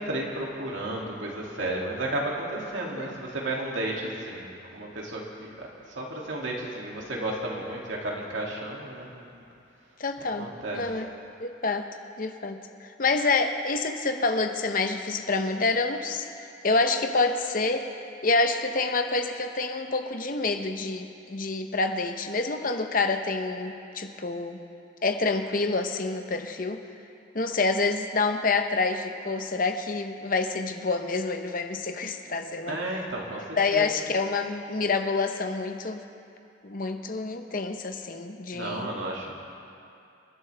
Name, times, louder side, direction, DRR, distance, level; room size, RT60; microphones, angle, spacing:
voice 1, 0.0-4.5 4.7-9.4 10.4-10.8 32.6-33.9 38.5-39.3, right 1 dB, 85° right, -3 dB, 2.6 m, -33 dB
voice 2, 10.0-11.1 11.4-11.9 12.2-17.9 18.2-24.6 25.0-26.8 27.3-32.8 33.6-36.0 36.6-38.9, left 3 dB, 45° left, 6 dB, 0.9 m, -27 dB
28.0 x 11.0 x 3.5 m, 2.5 s
head